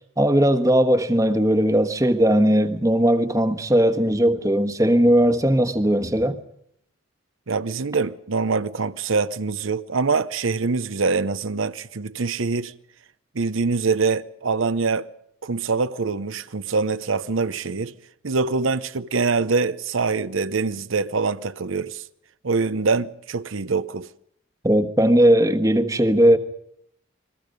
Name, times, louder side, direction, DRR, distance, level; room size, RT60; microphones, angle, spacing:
voice 1, 0.2-6.4 24.6-26.4, equal, 15° right, 1.3 m, -18 dB
voice 2, 7.5-12.7 13.3-15.1 15.4-17.9 18.2-22.0 22.4-24.1, right 4 dB, 80° right, 0.8 m, -24 dB
29.0 x 21.5 x 5.3 m
head